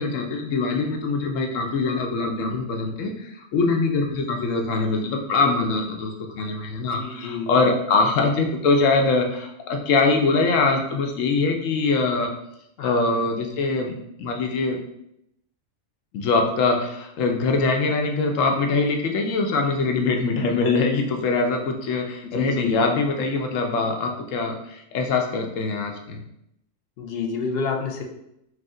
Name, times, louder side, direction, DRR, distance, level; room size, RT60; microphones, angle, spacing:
voice 1, 0.0-12.3 12.8-13.9 14.2-14.8 16.1-26.2, left 3 dB, 85° left, 3 dB, 1.0 m, -23 dB
voice 2, 7.0-7.5 12.8-13.2 22.3-22.9 27.0-28.0, left 4 dB, 60° left, 3 dB, 0.7 m, -29 dB
4.8 x 2.1 x 3.6 m, 0.79 s
omnidirectional pair, 1.3 m